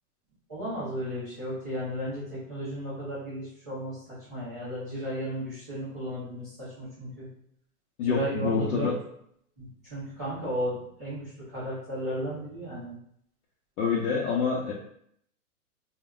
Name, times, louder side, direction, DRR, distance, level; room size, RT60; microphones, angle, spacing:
voice 1, 0.5-7.3 8.0-8.9 9.6-12.9, right 1 dB, 15° right, -14 dB, 0.3 m, -34 dB
voice 2, 8.0-8.9 13.8-14.7, left 5 dB, 70° left, -4 dB, 0.7 m, -26 dB
2.2 x 2.1 x 3.6 m, 0.69 s
hypercardioid pair, 145°, 45 cm